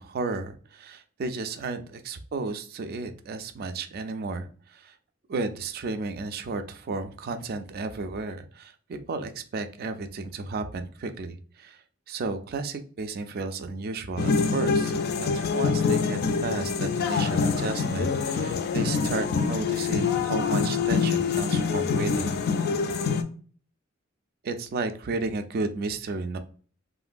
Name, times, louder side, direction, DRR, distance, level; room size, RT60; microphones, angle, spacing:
voice 1, 0.0-5.0 5.3-22.4 24.4-26.4, right 3 dB, 45° right, 8 dB, 0.3 m, -33 dB
sound 1, 14.2-23.2, left 5 dB, 50° left, 0.3 m, -25 dB
2.9 x 2.5 x 2.5 m, 0.43 s
head